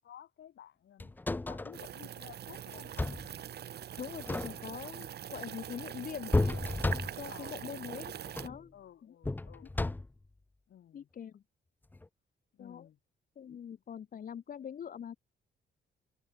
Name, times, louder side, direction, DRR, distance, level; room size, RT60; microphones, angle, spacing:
voice 1, 0.0-1.2 1.5-3.2 7.3-8.4 8.7-9.7 10.7-11.1 12.5-13.0, left 10 dB, 65° left, 5.2 m, -54 dB
sound 1, 1.0-1.8 2.7-3.3 4.1-4.9 6.3-7.4 8.2-8.6 9.2-10.3 11.9-12.1, left 2 dB, 10° left, 0.5 m, -33 dB
sound 2, 1.7-8.5, right 10 dB, 50° right, 1.1 m, -43 dB
voice 2, 4.0-6.3 7.1-8.1 8.4-8.7 9.0-9.1 10.9-11.4 12.6-12.9 13.4-15.2, left 8 dB, 45° left, 1.2 m, -43 dB
wide cardioid pair, 175°, 21 cm